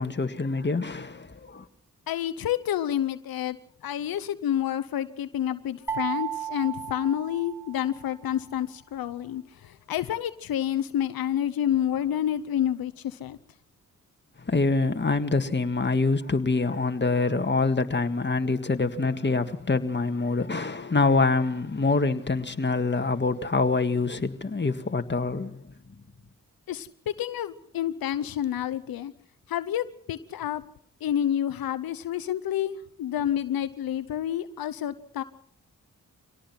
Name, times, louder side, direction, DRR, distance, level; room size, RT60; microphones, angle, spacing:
voice 1, 0.0-1.7 14.4-25.6, left 3 dB, 30° left, 1.9 m, -25 dB
voice 2, 2.1-3.6 3.8-13.4 26.7-29.1 29.5-30.6 31.0-35.2, left 10 dB, 90° left, 0.8 m, -29 dB
sound 1, 5.9-8.0, right 9 dB, 10° right, 3.9 m, -34 dB
24.0 x 18.0 x 5.9 m
cardioid pair, 50°, 34 cm